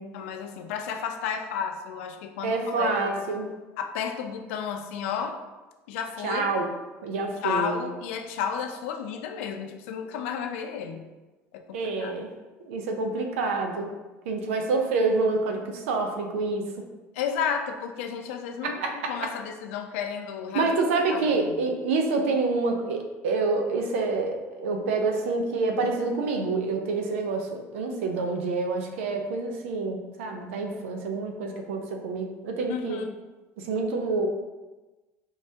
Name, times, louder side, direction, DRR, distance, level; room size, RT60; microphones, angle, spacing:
voice 1, 0.1-3.3 3.8-5.4 5.9-6.5 7.4-11.1 11.5-12.1 17.1-20.7 21.1-21.5 32.7-33.1, left 7 dB, 85° left, 6 dB, 0.5 m, -32 dB
voice 2, 2.4-3.5 6.2-6.7 7.0-7.8 11.7-12.3 12.6-13.9 14.3-16.7 18.6-19.1 20.5-33.0 33.6-34.3, right 3 dB, 90° right, 3 dB, 0.6 m, -27 dB
4.7 x 3.3 x 2.7 m, 1.2 s
supercardioid pair, 85°, 7 cm